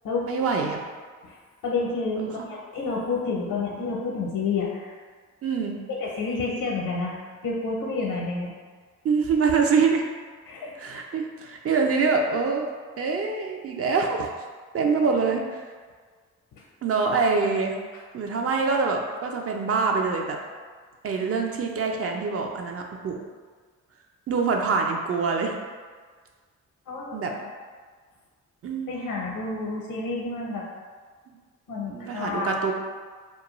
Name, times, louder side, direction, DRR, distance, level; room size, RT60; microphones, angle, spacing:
voice 1, 0.3-0.8 2.2-2.3 5.4-5.7 9.0-10.0 10.8-14.3 14.7-15.6 16.8-17.7 18.1-20.4 21.0-23.2 24.3-25.5 27.1-27.3 28.6-29.0 31.9-32.7, right 4 dB, 45° right, 2 dB, 0.4 m, -25 dB
voice 2, 1.6-5.0 5.9-8.5 10.5-10.7 14.8-15.1 16.5-16.6 26.9-27.5 28.9-30.7 31.7-32.6, left 3 dB, 70° left, -3 dB, 0.6 m, -30 dB
2.4 x 2.2 x 2.9 m, 1.5 s
supercardioid pair, 55°, 33 cm